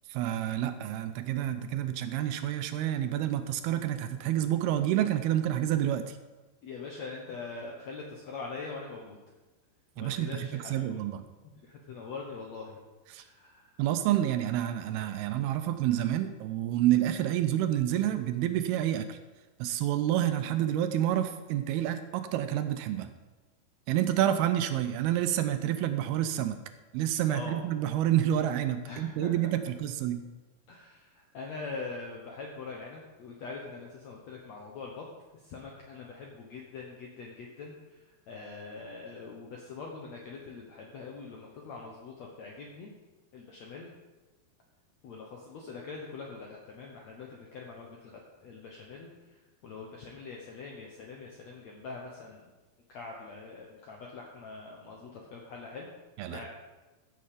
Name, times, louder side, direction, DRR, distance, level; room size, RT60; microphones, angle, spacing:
voice 1, 0.1-6.2 10.0-11.3 13.1-13.2 13.8-19.2 19.6-23.1 23.9-26.6 26.9-30.2 56.2-56.4, right 12 dB, 80° right, 10 dB, 2.5 m, -28 dB
voice 2, 6.6-9.2 10.0-11.0 11.6-12.8 13.1-13.7 27.3-27.6 28.9-29.4 30.7-35.0 35.4-38.0 38.3-42.9 43.3-43.9 45.0-49.1 49.6-52.5 52.9-55.9 56.2-56.5, left 4 dB, 70° left, -1 dB, 1.6 m, -43 dB
14.5 x 6.7 x 5.0 m, 1.2 s
omnidirectional pair, 4.6 m